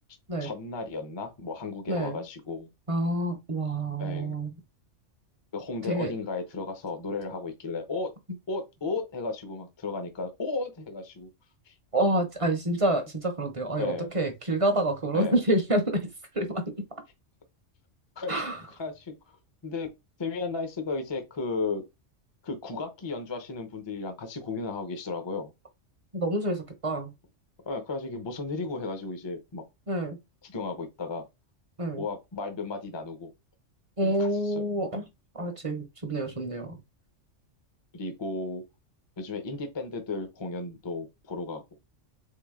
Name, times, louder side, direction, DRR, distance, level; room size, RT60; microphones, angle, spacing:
voice 1, 0.4-2.7 4.0-4.4 5.5-8.1 8.5-11.3 11.7-11.8 13.8-14.1 15.1-15.3 18.2-18.3 18.8-19.1 19.6-19.9 20.2-21.8 22.4-25.5 27.7-29.6 30.4-31.2 32.0-33.3 34.0-34.7 37.9-38.6 39.2-41.6, left 3 dB, 25° left, 0.7 m, -34 dB
voice 2, 1.9-2.2 2.9-4.5 5.8-6.1 11.9-16.1 16.3-16.6 18.3-18.6 26.1-27.1 29.9-30.2 31.8-32.1 34.0-35.0 35.3-36.8, right 1 dB, 30° right, 0.8 m, -28 dB
3.8 x 3.4 x 3.6 m
omnidirectional pair, 1.3 m